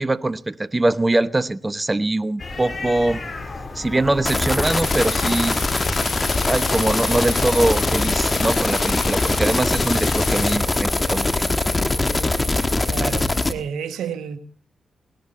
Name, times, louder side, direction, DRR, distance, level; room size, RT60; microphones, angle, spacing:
voice 1, 0.0-3.2 3.7-5.6 6.4-11.3, right 2 dB, 25° right, 0.9 m, -22 dB
sound 1, 2.4-8.0, left 3 dB, 50° left, 3.5 m, -34 dB
sound 2, 4.2-13.5, left 2 dB, 30° left, 1.4 m, -22 dB
sound 3, 4.6-10.6, left 8 dB, 75° left, 0.6 m, -32 dB
voice 2, 12.9-14.4, right 7 dB, 85° right, 1.4 m, -30 dB
19.0 x 13.0 x 4.2 m
supercardioid pair, 45°, 0 cm